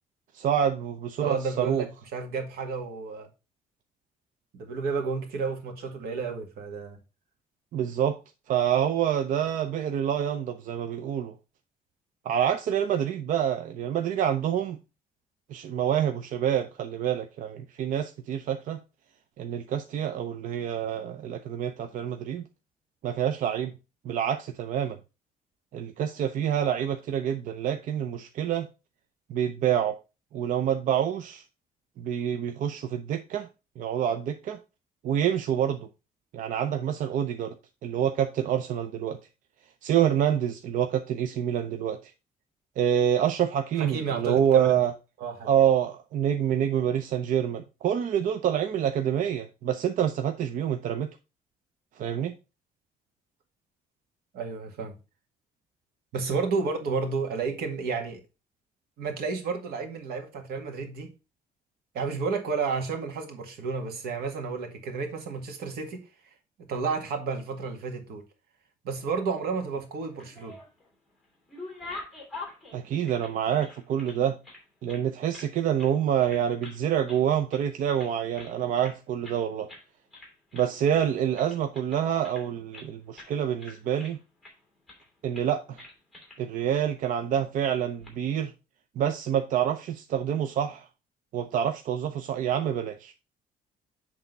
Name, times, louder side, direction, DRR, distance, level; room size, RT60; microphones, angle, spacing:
voice 1, 0.3-1.9 7.7-8.2 8.5-11.3 12.2-14.8 15.5-18.8 19.4-22.4 23.0-23.7 24.0-25.0 25.7-28.7 29.3-29.9 30.3-31.4 32.0-33.5 33.8-34.6 35.0-35.9 36.3-37.5 37.8-39.2 39.8-42.1 42.8-44.9 45.4-51.1 52.0-52.4 72.7-74.4 74.8-79.7 80.5-84.2 85.2-85.8 86.4-88.5 89.0-90.9 91.3-93.1, right 9 dB, 55° right, 0.6 m, -27 dB
voice 2, 1.2-3.3 4.5-7.0 43.8-44.8 45.2-45.5 54.3-54.9 56.1-58.2 59.0-61.1 61.9-66.1 66.7-68.2 68.8-70.6, right 4 dB, 85° right, 1.9 m, -31 dB
sound 1, 70.0-70.9 71.2-74.2 74.4-75.5 75.8-76.0 76.2-76.8 77.1-77.7 78.0-79.0 79.2-79.4 79.7-79.8 80.1-80.7 81.0-82.9 83.1-83.3 83.6-84.5 84.9-85.1 85.3-85.5 85.8-86.4 86.7-86.8 87.8-88.1, left 2 dB, ahead, 2.8 m, -45 dB
8.1 x 3.6 x 5.3 m
cardioid pair, 175°, 16 cm